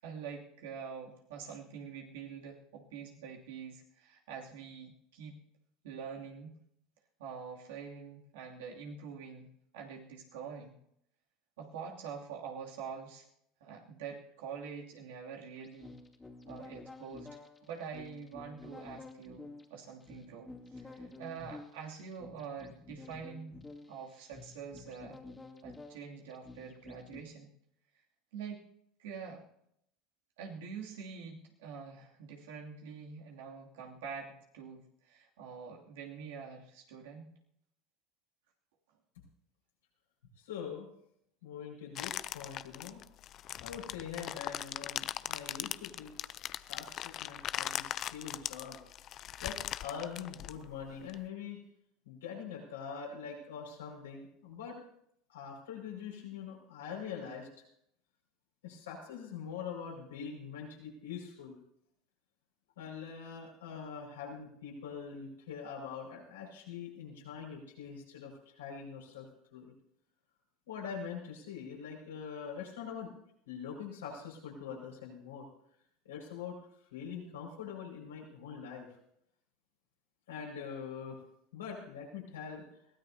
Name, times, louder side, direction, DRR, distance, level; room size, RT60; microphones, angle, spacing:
voice 1, 0.0-5.4 5.8-6.6 7.2-10.8 11.6-13.3 13.6-15.9 16.5-23.6 23.9-25.2 25.6-27.5 28.3-28.6 29.0-29.4 30.4-37.3, right 6 dB, 75° right, -1 dB, 2.7 m, -45 dB
sound 1, 15.6-27.2, left 3 dB, 15° left, 2.6 m, -51 dB
voice 2, 40.4-40.9 41.4-43.0 43.6-46.2 46.5-48.8 49.4-51.6 52.1-54.8 55.3-57.6 58.6-61.6 62.8-69.7 70.7-73.1 73.5-75.5 76.0-76.6 76.9-78.9 80.3-81.2 81.5-82.6, left 7 dB, 90° left, -2 dB, 5.6 m, -43 dB
sound 2, 41.9-51.1, left 12 dB, 50° left, 0.5 m, -40 dB
22.0 x 16.5 x 2.8 m, 0.74 s
hypercardioid pair, 85°, 0 cm